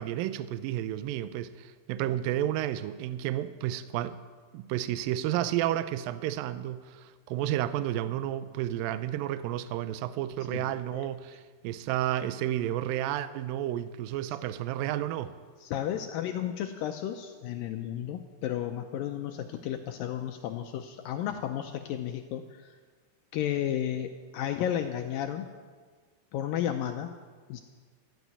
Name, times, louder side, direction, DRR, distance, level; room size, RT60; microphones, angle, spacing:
voice 1, 0.0-4.2 4.5-15.3, right 12 dB, 85° right, 13 dB, 2.1 m, -31 dB
voice 2, 15.6-22.8 23.3-25.5 26.3-27.1 27.5-27.6, left 10 dB, 80° left, 5 dB, 2.1 m, -33 dB
14.0 x 9.1 x 9.4 m, 1.5 s
omnidirectional pair, 4.7 m